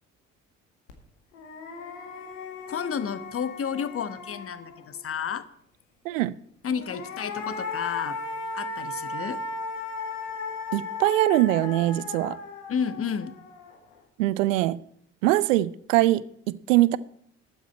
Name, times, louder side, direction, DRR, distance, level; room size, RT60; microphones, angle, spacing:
sound 1, 0.9-1.0 1.3-5.0 6.6-13.9, left 3 dB, 80° left, 1.9 m, -36 dB
voice 1, 2.7-5.5 6.6-8.2 8.5-9.4 12.7-13.3, left 7 dB, 35° left, 1.1 m, -31 dB
voice 2, 6.0-6.4 10.7-12.4 14.2-14.8 15.2-17.0, right 16 dB, 75° right, 0.6 m, -22 dB
12.5 x 9.2 x 4.4 m
hypercardioid pair, 50°, 38 cm